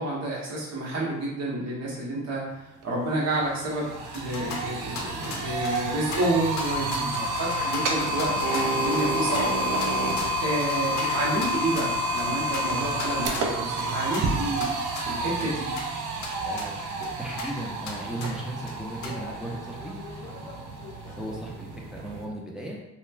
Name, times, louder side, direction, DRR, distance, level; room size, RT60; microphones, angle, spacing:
voice 1, 0.0-2.4 2.8-9.6 10.4-14.7 15.0-15.7, right 1 dB, 60° right, -4 dB, 1.1 m, -29 dB
sound 1, 2.8-2.9 3.2-22.3, right 1 dB, 85° right, 0.5 m, -29 dB
sound 2, 4.0-22.0, left 4 dB, 65° left, 0.6 m, -40 dB
voice 2, 7.0-7.4 8.3-8.4 15.4-15.5 16.4-20.5 21.2-22.8, right 1 dB, ahead, -3 dB, 0.5 m, -37 dB
2.9 x 2.2 x 2.4 m, 1.0 s
cardioid pair, 90°, 30 cm